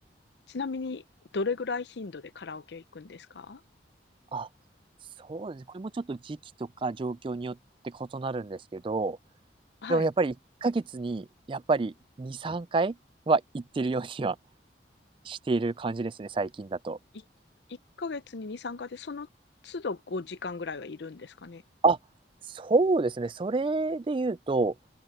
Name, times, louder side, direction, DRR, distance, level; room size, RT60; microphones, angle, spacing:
voice 1, 0.5-1.0 1.3-3.6 9.8-10.1 17.7-19.3 19.6-21.6, left 4 dB, 70° left, 0.6 m, -36 dB
voice 2, 5.3-6.4 6.8-7.6 7.8-9.2 9.9-10.3 10.6-12.9 13.3-14.4 15.3-17.0 21.8-22.0 22.5-24.7, right 3 dB, 30° right, 0.3 m, -28 dB
head